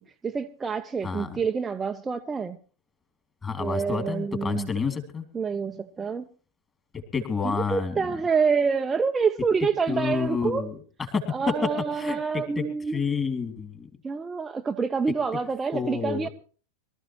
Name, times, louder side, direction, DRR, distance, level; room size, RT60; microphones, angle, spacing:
voice 1, 0.2-2.6 3.6-4.7 5.3-6.3 7.4-10.7 11.3-13.0 14.0-16.3, right 5 dB, 15° right, 0.6 m, -27 dB
voice 2, 3.4-5.2 6.9-8.1 9.9-10.8 11.1-12.6 12.9-13.9 15.7-16.3, left 5 dB, 20° left, 2.6 m, -29 dB
23.5 x 13.5 x 3.0 m
figure-of-eight pair, 90°, 0 cm